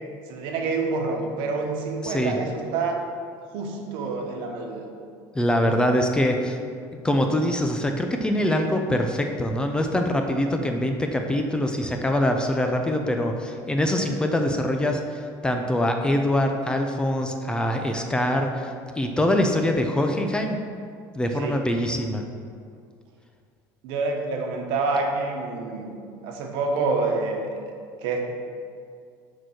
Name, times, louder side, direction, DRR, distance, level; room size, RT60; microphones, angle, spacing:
voice 1, 0.3-3.0 3.5-4.9 21.4-21.6 23.8-26.0 26.2-27.6 28.0-28.2, right 3 dB, 70° right, 2 dB, 1.2 m, -27 dB
voice 2, 2.0-2.3 5.3-6.6 7.0-20.6 21.1-22.2, left 1 dB, 10° left, 4 dB, 0.5 m, -24 dB
6.6 x 4.6 x 6.3 m, 2.3 s
cardioid pair, 135°, 9 cm